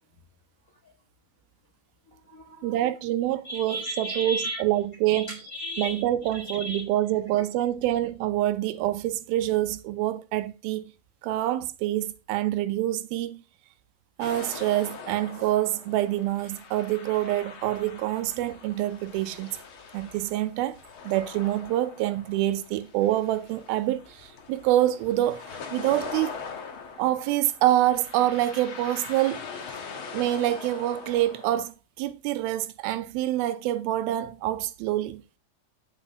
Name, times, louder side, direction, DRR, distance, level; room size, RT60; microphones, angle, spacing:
voice 1, 2.1-2.9 3.4-4.6 5.1-6.0 6.3-6.8, equal, 25° left, 1.9 m, -35 dB
voice 2, 2.6-5.3 5.8-10.8 11.2-13.4 14.2-19.5 19.9-20.8 21.0-26.3 27.0-29.4 30.1-35.2, right 14 dB, 85° right, 2.5 m, -26 dB
sound 1, 14.2-31.7, left 5 dB, 55° left, 1.5 m, -42 dB
8.3 x 8.1 x 3.4 m
omnidirectional pair, 4.2 m